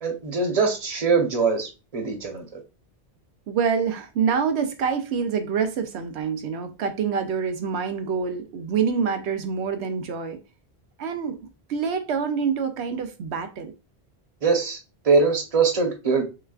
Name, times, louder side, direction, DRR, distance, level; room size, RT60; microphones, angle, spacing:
voice 1, 0.0-2.4 14.4-14.8 15.0-16.2, right 4 dB, 35° right, 1.0 m, -22 dB
voice 2, 3.5-10.4 11.0-13.7, right 6 dB, 85° right, 0.9 m, -26 dB
6.3 x 2.3 x 2.3 m
omnidirectional pair, 1.1 m